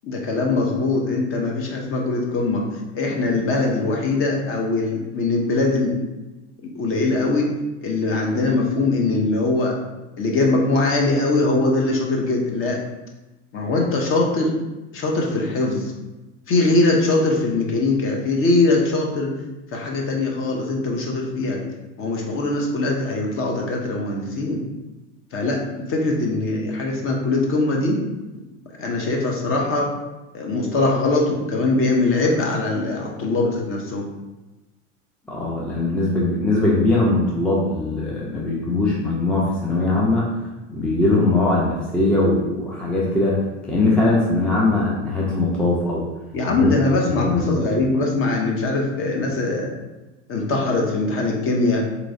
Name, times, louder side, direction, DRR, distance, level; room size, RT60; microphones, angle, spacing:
voice 1, 0.0-2.7 2.9-6.0 6.6-7.5 7.8-9.7 10.2-12.8 13.5-14.5 14.9-15.9 16.5-19.3 19.7-21.6 22.0-24.6 25.3-28.0 28.8-29.9 30.3-34.1 46.3-49.7 50.3-51.9, left 2 dB, 35° left, 0 dB, 0.8 m, -21 dB
voice 2, 35.3-40.3 40.7-43.4 43.6-46.0 46.5-46.7 47.2-47.6, left 2 dB, 5° left, -4 dB, 0.4 m, -20 dB
3.8 x 3.0 x 2.6 m, 1.1 s
supercardioid pair, 115°, 37 cm